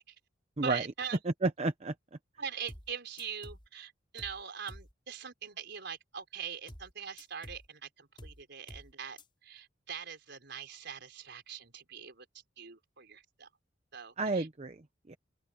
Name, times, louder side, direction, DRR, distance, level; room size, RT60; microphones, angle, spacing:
voice 1, 0.6-1.2 2.4-12.3 12.6-13.5 13.9-14.5, right 7 dB, 65° right, 4.8 m, -42 dB
voice 2, 1.2-1.9 14.2-15.2, right 3 dB, 35° right, 0.8 m, -32 dB
sound 1, 2.7-2.9 3.2-3.7 4.2-4.4 4.7-4.9 6.7-6.9 7.2-7.7 8.2-8.4 8.7-8.9 9.2-9.3, equal, 25° left, 6.3 m, -49 dB
open air
head